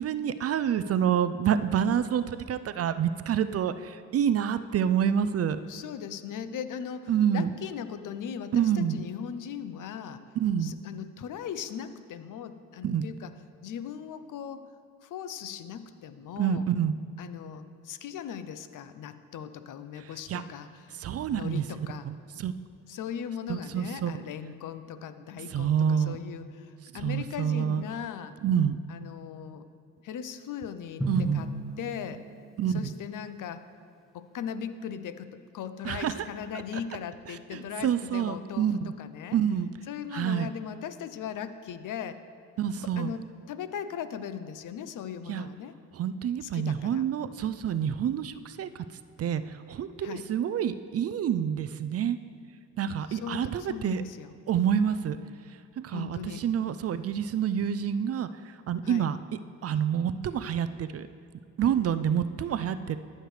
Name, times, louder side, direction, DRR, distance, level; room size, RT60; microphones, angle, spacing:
voice 1, 0.0-5.6 7.1-7.5 8.5-9.1 10.4-10.7 12.8-13.0 16.4-16.9 20.0-20.4 21.0-21.6 22.0-22.5 23.5-24.1 25.5-26.2 26.9-27.9 28.4-28.8 31.1-31.5 32.6-32.9 35.8-36.3 37.3-38.9 39.3-39.7 40.1-40.5 42.6-43.1 45.3-45.5 45.9-48.8 49.2-52.2 52.8-54.0 54.5-55.2 55.5-55.6 55.8-59.2 59.6-61.1 61.6-63.0, right 8 dB, 45° right, 12 dB, 0.4 m, -28 dB
voice 2, 5.6-10.2 10.6-13.3 13.6-14.7 15.0-16.7 17.2-21.0 21.3-22.1 22.9-28.4 28.9-29.7 30.0-31.5 31.8-32.2 32.7-33.7 34.1-39.4 39.9-42.2 42.8-45.7 46.4-47.0 50.0-50.2 53.1-54.3 55.9-56.4 58.8-59.0, left 8 dB, 60° left, 12 dB, 0.6 m, -39 dB
Drum, 31.0-33.2, right 1 dB, ahead, 1.4 m, -35 dB
14.0 x 6.5 x 3.2 m, 2.4 s
supercardioid pair, 70°, 36 cm